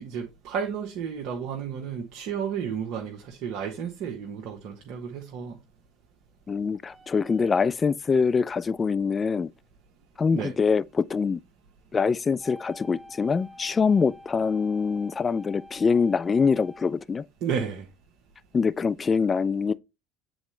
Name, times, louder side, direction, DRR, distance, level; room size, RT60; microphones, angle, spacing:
voice 1, 0.0-5.6 10.3-10.5 17.4-17.9, right 7 dB, 60° right, 1.1 m, -32 dB
voice 2, 6.5-9.5 10.2-11.4 11.9-17.2 18.5-19.7, left 5 dB, 30° left, 0.4 m, -24 dB
sound 1, 6.9-7.7 12.4-16.9, left 1 dB, 5° left, 1.5 m, -48 dB
7.7 x 4.2 x 3.2 m
hypercardioid pair, 70°, 0 cm